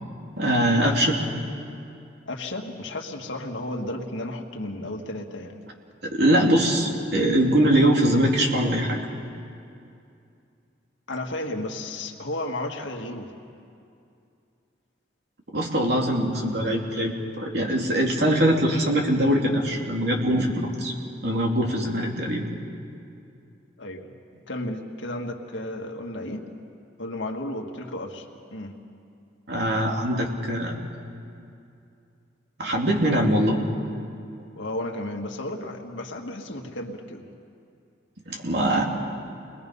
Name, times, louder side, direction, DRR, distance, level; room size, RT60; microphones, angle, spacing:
voice 1, 0.4-1.2 6.0-9.0 15.5-20.9 21.2-22.5 29.5-30.8 32.6-33.6 38.3-38.8, right 1 dB, 60° right, 0 dB, 2.9 m, -22 dB
voice 2, 2.3-5.6 11.1-13.3 23.8-24.1 24.5-26.5 27.0-28.3 28.5-28.8 34.5-37.3, left 1 dB, 90° left, 2 dB, 1.9 m, -33 dB
29.5 x 21.5 x 5.5 m, 2.5 s
head